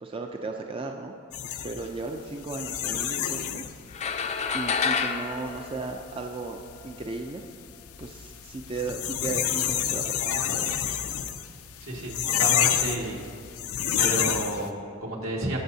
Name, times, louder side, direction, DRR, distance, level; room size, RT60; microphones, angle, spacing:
voice 1, 0.0-1.1 1.6-3.6 4.5-6.6 6.8-7.4 8.0-10.8, right 3 dB, 25° right, 3 dB, 0.4 m, -35 dB
sound 1, 1.3-14.7, left 10 dB, 90° left, 0.5 m, -29 dB
sound 2, 3.9-6.6, left 5 dB, 30° left, 0.4 m, -29 dB
voice 2, 11.8-13.2 14.0-15.6, right 1 dB, 70° right, -2 dB, 1.9 m, -31 dB
20.5 x 6.9 x 2.7 m, 2.5 s
head